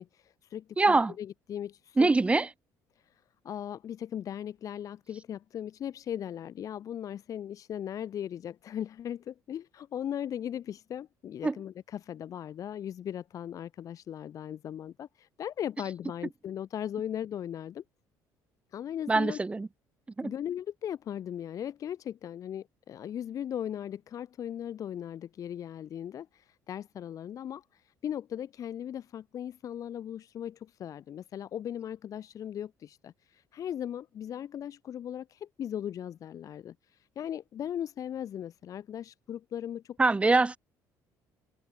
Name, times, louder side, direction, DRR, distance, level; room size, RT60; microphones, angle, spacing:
voice 1, 0.0-2.1 3.0-17.8 18.7-19.4 20.2-40.0, left 10 dB, 50° left, 0.8 m, -38 dB
voice 2, 0.8-1.1 2.0-2.5 11.4-11.5 19.1-19.7 20.2-20.3 40.0-40.6, right 3 dB, 15° right, 0.6 m, -23 dB
cardioid pair, 100°, 7 cm